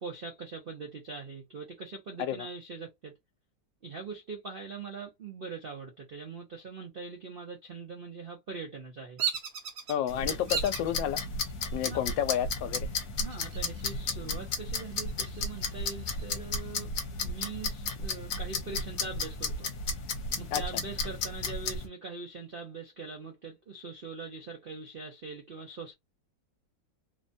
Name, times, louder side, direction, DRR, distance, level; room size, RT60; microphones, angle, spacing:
voice 1, 0.0-3.2 3.8-9.2 10.3-10.4 11.8-12.2 13.2-16.9 17.2-19.7 20.4-25.9, right 4 dB, 85° right, 0.4 m, -42 dB
Bird vocalization bird call bird song, 9.2-9.9 10.5-10.9 11.5-12.0 13.2-13.9 14.3-14.4 14.8-16.3, right 8 dB, 60° right, 1.0 m, -35 dB
voice 2, 9.9-11.2 11.7-12.9 20.5-20.6, left 10 dB, 80° left, 1.3 m, -30 dB
sound 1, 10.1-21.9, left 3 dB, 65° left, 1.2 m, -34 dB
3.1 x 2.2 x 2.5 m
omnidirectional pair, 2.0 m